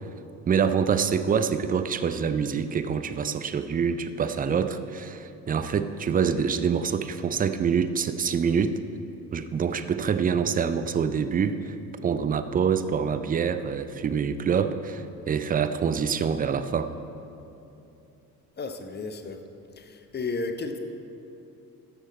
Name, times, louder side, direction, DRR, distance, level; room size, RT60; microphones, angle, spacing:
voice 1, 0.5-8.8 9.3-11.8 12.0-16.9, right 6 dB, 20° right, 10 dB, 0.4 m, -26 dB
voice 2, 18.6-19.4 19.8-20.8, left 3 dB, 20° left, 7 dB, 0.8 m, -33 dB
14.0 x 6.4 x 4.2 m, 2.9 s
figure-of-eight pair, 45°, 45 cm